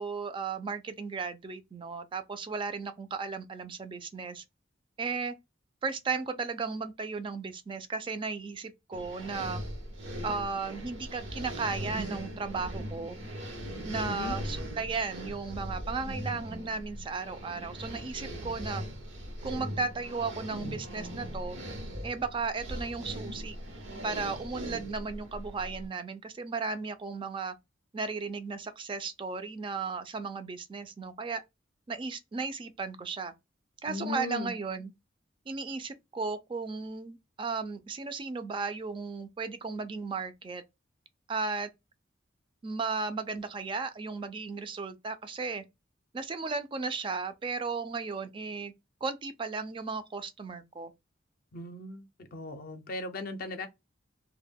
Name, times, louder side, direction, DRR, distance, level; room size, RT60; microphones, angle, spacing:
voice 1, 0.0-4.4 5.0-5.4 5.8-9.6 10.2-13.2 13.9-18.8 19.4-21.6 22.0-23.6 24.0-27.5 27.9-31.4 31.9-33.3 33.8-34.9 35.5-40.6 41.3-41.7 42.6-45.6 46.1-48.7 49.0-50.9, right 4 dB, 25° right, 0.3 m, -35 dB
sound 1, 8.9-25.9, equal, 85° right, 0.8 m, -39 dB
voice 2, 33.8-34.5 51.5-53.7, left 2 dB, 50° left, 0.4 m, -38 dB
2.2 x 2.1 x 3.4 m
head